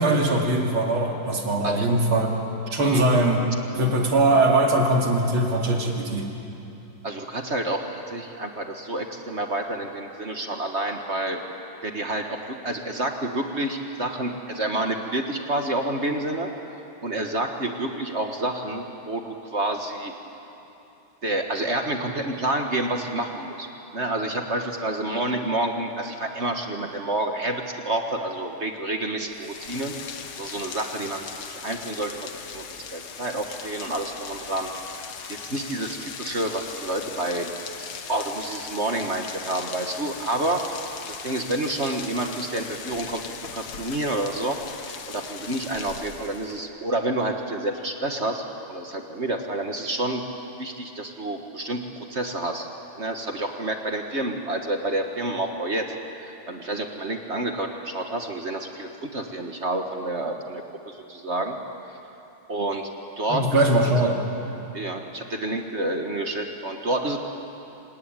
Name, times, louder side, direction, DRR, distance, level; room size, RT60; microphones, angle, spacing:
voice 1, 0.0-2.3 2.7-3.4 3.7-6.3 63.3-64.2, right 2 dB, 80° right, 1 dB, 3.4 m, -21 dB
voice 2, 7.0-11.4 11.8-16.5 17.0-20.1 21.2-23.7 23.9-30.0 30.4-32.6 32.9-34.7 35.0-37.5 37.8-40.7 41.1-43.2 43.5-50.2 50.6-52.7 53.0-55.9 56.2-61.5 62.5-62.9 63.2-64.1 64.7-67.2, right 1 dB, 35° right, 4 dB, 1.5 m, -29 dB
Rain, 29.3-46.7, left 6 dB, 85° left, 2.2 m, -39 dB
27.0 x 19.5 x 9.0 m, 2.9 s
omnidirectional pair, 2.3 m